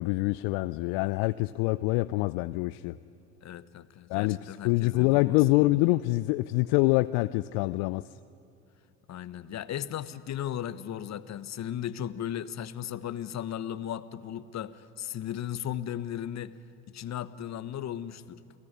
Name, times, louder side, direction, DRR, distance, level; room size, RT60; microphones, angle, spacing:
voice 1, 0.0-3.0 4.1-8.1, left 21 dB, 60° left, 15 dB, 0.6 m, -25 dB
voice 2, 3.4-5.4 9.1-16.6 16.9-18.4, left 10 dB, 40° left, 14 dB, 1.2 m, -36 dB
29.5 x 18.5 x 9.7 m, 2.7 s
hypercardioid pair, 70°, 41 cm